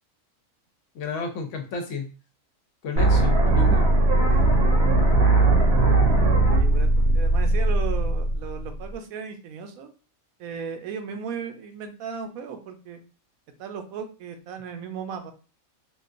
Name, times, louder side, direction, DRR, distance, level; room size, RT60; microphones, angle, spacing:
voice 1, 0.9-2.1 2.8-3.9 4.3-4.4, left 4 dB, 70° left, 5 dB, 0.9 m, -32 dB
sound 1, 3.0-8.9, right 2 dB, 55° right, 0.8 m, -19 dB
voice 2, 6.5-9.9 10.4-13.0 13.6-15.3, right 6 dB, 85° right, 6 dB, 1.0 m, -36 dB
3.6 x 2.3 x 2.5 m, 0.35 s
omnidirectional pair, 1.4 m